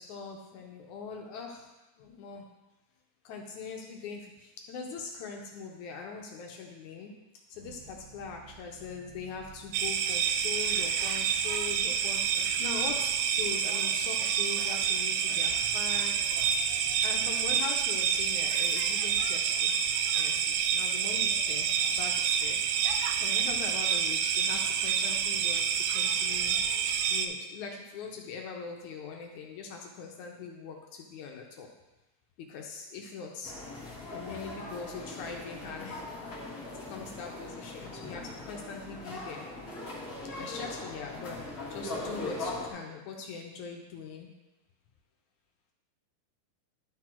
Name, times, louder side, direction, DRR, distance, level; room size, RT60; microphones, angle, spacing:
voice 1, 0.0-1.7 2.0-2.5 3.2-7.1 7.5-16.4 17.0-19.8 20.1-22.6 23.2-26.6 27.1-31.7 32.4-33.6 34.1-36.1 36.7-39.5 40.4-44.3, left 5 dB, 75° left, 1 dB, 2.0 m, -42 dB
sound 1, 7.5-14.7, right 6 dB, 55° right, 2.1 m, -55 dB
sound 2, 9.7-27.3, right 7 dB, 80° right, 1.9 m, -28 dB
sound 3, 33.4-42.7, left 2 dB, 35° left, 1.7 m, -40 dB
12.0 x 4.1 x 4.4 m, 1.0 s
omnidirectional pair, 3.8 m